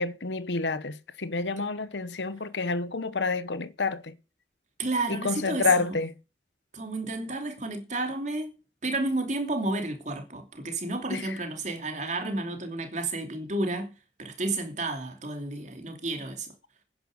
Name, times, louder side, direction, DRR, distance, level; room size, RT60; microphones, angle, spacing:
voice 1, 0.0-4.1 5.1-6.1 11.1-11.4, left 4 dB, 85° left, 1.0 m, -29 dB
voice 2, 4.8-5.9 6.7-8.5 8.8-13.9 14.2-16.5, right 2 dB, 40° right, 2.8 m, -31 dB
10.5 x 10.0 x 6.5 m
head